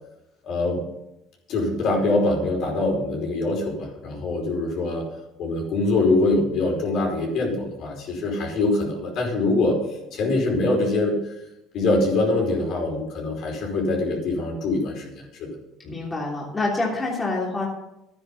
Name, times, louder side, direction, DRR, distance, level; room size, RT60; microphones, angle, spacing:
voice 1, 0.4-0.8 1.5-5.1 5.4-9.8 10.1-11.2 11.7-15.5 15.8-15.9, left 2 dB, 60° left, 0 dB, 5.2 m, -23 dB
voice 2, 15.9-17.7, left 2 dB, 20° left, -3 dB, 3.1 m, -26 dB
12.5 x 9.6 x 5.8 m, 0.89 s
supercardioid pair, 105°, 0 cm